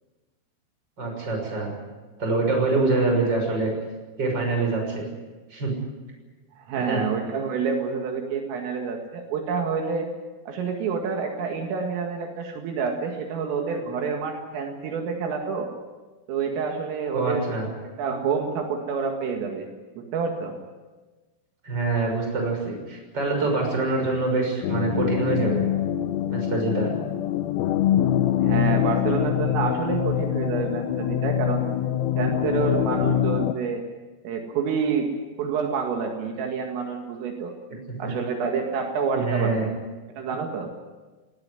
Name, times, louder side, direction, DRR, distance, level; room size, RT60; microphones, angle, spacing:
voice 1, 1.0-1.7 2.2-3.7 4.2-5.0 5.5-5.7 6.8-7.0 17.1-17.7 21.6-25.6 26.3-26.9 38.0-38.1 39.2-39.7, right 3 dB, 20° right, 1 dB, 6.4 m, -25 dB
voice 2, 6.6-10.1 10.5-15.7 16.3-17.5 18.0-19.7 20.0-20.5 28.4-31.7 32.2-33.8 34.2-35.1 35.4-37.5 38.0-39.7 40.2-40.7, right 5 dB, 75° right, 2 dB, 4.5 m, -28 dB
sound 1, 24.6-33.5, left 11 dB, 90° left, 3.8 m, -24 dB
19.5 x 19.0 x 9.7 m, 1.2 s
omnidirectional pair, 6.0 m